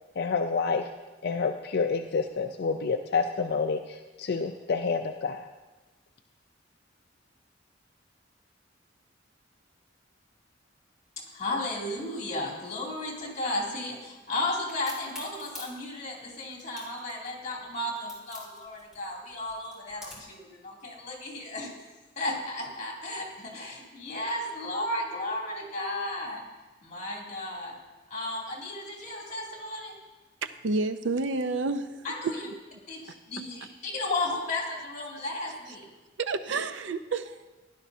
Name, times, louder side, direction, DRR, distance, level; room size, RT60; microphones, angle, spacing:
voice 1, 0.2-0.9 1.2-5.5, left 4 dB, 60° left, 5 dB, 0.5 m, -28 dB
voice 2, 11.3-21.7 22.2-26.4 26.8-27.8 28.1-29.9 32.0-32.4 32.9-35.9, left 2 dB, 40° left, -2 dB, 2.7 m, -34 dB
Crack, 14.7-20.4, left 1 dB, 5° right, 2.9 m, -46 dB
voice 3, 30.4-32.0 36.2-37.5, right 3 dB, 75° right, 10 dB, 0.6 m, -30 dB
16.5 x 11.0 x 2.7 m, 1.2 s
head